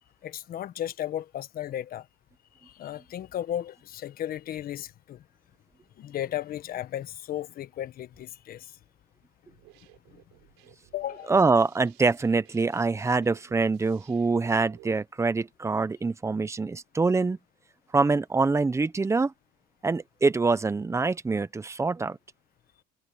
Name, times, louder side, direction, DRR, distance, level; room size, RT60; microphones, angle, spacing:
voice 1, 0.2-2.1 2.6-5.2 6.0-8.8 10.1-10.2 10.9-11.3, left 11 dB, 50° left, 1.5 m, -35 dB
sound 1, 9.5-14.9, right 25 dB, 90° right, 4.7 m, -57 dB
voice 2, 11.3-17.4 17.9-19.3 19.8-22.2, right 3 dB, 15° right, 1.0 m, -25 dB
cardioid pair, 115°, 19 cm